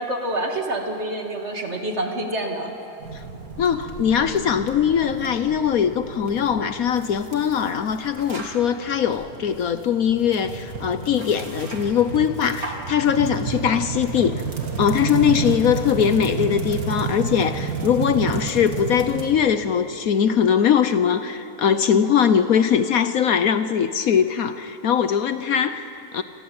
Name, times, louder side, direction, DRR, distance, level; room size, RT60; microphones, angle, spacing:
voice 1, 0.0-2.7, right 1 dB, 40° right, 2 dB, 2.9 m, -27 dB
sound 1, 3.0-19.3, right 5 dB, 60° right, 3.3 m, -31 dB
voice 2, 3.6-14.4 14.8-26.2, left 8 dB, 65° left, 11 dB, 1.2 m, -21 dB
28.5 x 21.5 x 8.8 m, 2.8 s
omnidirectional pair, 1.7 m